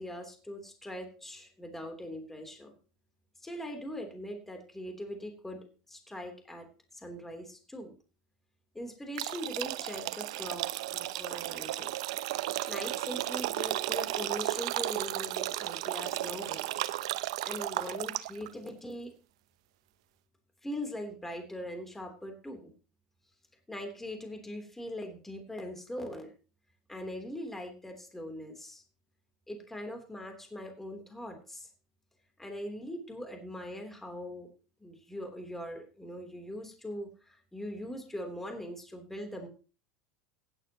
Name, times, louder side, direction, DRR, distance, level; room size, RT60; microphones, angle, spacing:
voice 1, 0.0-2.7 3.4-6.7 6.9-7.9 8.7-12.0 12.7-16.7 17.4-19.1 20.6-22.7 23.7-26.3 26.9-28.8 29.5-31.7 32.4-34.5 34.8-39.5, equal, 10° left, 4 dB, 3.4 m, -41 dB
sound 1, 9.2-18.5, right 16 dB, 70° right, 0.7 m, -34 dB
16.0 x 11.0 x 3.0 m, 0.35 s
hypercardioid pair, 85°, 3 cm